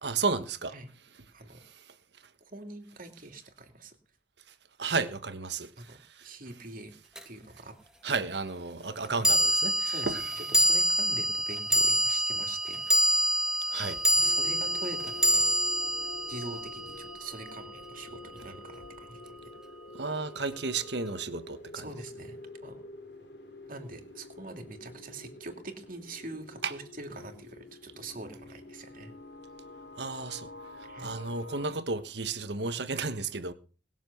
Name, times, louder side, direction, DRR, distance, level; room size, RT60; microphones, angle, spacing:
voice 1, 0.0-0.7 4.8-5.7 8.0-10.2 13.7-14.0 19.9-21.6 26.6-26.7 30.0-30.5 31.0-33.5, right 4 dB, 70° right, 1.4 m, -32 dB
voice 2, 2.5-4.0 5.8-6.9 7.2-7.7 8.1-8.2 9.1-9.3 9.8-12.8 14.1-15.5 16.3-19.5 21.7-22.4 22.6-22.8 23.7-29.1 30.8-31.1, right 2 dB, 50° right, 2.9 m, -44 dB
sound 1, 7.2-7.3 9.2-17.7, equal, 5° right, 1.4 m, -26 dB
sound 2, 14.2-31.7, left 2 dB, 80° left, 3.3 m, -47 dB
20.0 x 7.3 x 7.0 m
head